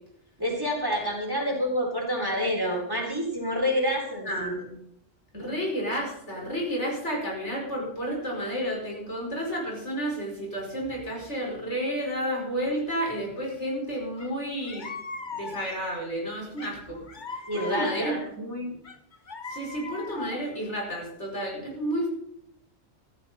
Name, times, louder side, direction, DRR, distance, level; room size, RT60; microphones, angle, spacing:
voice 1, 0.4-4.5 5.3-5.6 17.5-18.2, equal, 20° right, -1 dB, 3.9 m, -28 dB
voice 2, 4.3-4.7 5.3-14.9 15.4-17.0 17.3-18.8 19.5-22.1, equal, 80° left, -2 dB, 5.5 m, -31 dB
sound 1, 14.2-14.3 14.7-16.0 16.6-18.3 18.9-20.6, left 4 dB, 45° left, 1.3 m, -39 dB
15.0 x 14.0 x 4.3 m, 0.74 s
omnidirectional pair, 1.2 m